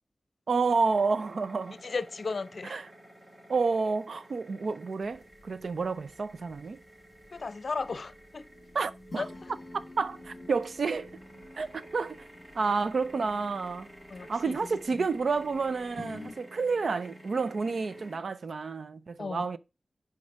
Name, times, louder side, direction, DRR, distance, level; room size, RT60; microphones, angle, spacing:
voice 1, 0.5-1.8 2.7-2.9 3.5-6.8 8.7-9.2 10.0-11.1 11.6-12.2 12.5-13.9 14.3-19.6, right 4 dB, 70° right, 0.6 m, -30 dB
sound 1, 0.6-18.2, equal, 30° right, 4.6 m, -52 dB
voice 2, 1.8-2.8 7.3-8.4 9.2-9.5 14.1-15.1 19.2-19.5, left 4 dB, 60° left, 0.7 m, -35 dB
sound 2, 5.0-16.4, left 2 dB, 35° left, 1.4 m, -50 dB
6.4 x 4.9 x 4.6 m
cardioid pair, 60°, 0 cm